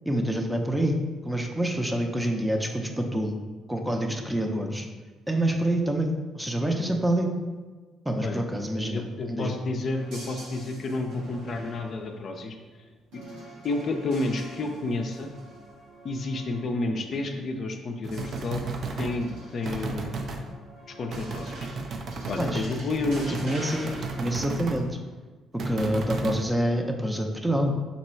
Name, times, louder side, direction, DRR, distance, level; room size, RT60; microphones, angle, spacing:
voice 1, 0.1-1.0 1.2-3.4 3.7-4.9 5.3-7.3 8.1-9.6 22.4-22.7 23.4-23.9 24.2-25.0 25.6-27.7, right 1 dB, 10° right, 3 dB, 0.6 m, -27 dB
voice 2, 8.9-12.6 13.1-13.2 13.6-15.3 16.0-18.7 19.0-20.2 20.9-21.6 22.3-23.4, left 2 dB, 55° left, 3 dB, 0.4 m, -30 dB
sound 1, 9.9-17.9 18.1-24.5, right 1 dB, 75° right, 0.9 m, -45 dB
sound 2, 18.0-19.2 19.6-20.4 21.1-24.8 25.6-26.4, right 3 dB, 60° right, 0.5 m, -34 dB
4.0 x 2.2 x 4.3 m, 1.3 s
hypercardioid pair, 55°, 0 cm